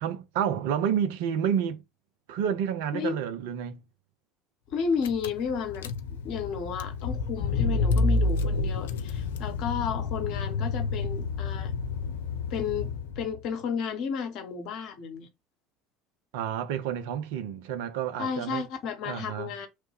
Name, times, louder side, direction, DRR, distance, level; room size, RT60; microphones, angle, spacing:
voice 1, 0.0-1.8 2.3-3.8 16.3-18.6 19.0-19.5, right 8 dB, 60° right, 0.5 m, -29 dB
Car / Engine, 4.7-4.8 5.0-13.4, left 3 dB, 65° left, 0.3 m, -29 dB
voice 2, 4.7-5.9 6.2-11.7 12.5-12.9 13.2-15.3 18.2-19.7, left 6 dB, 50° left, 0.8 m, -32 dB
3.0 x 2.1 x 3.2 m
figure-of-eight pair, 65°, 0 cm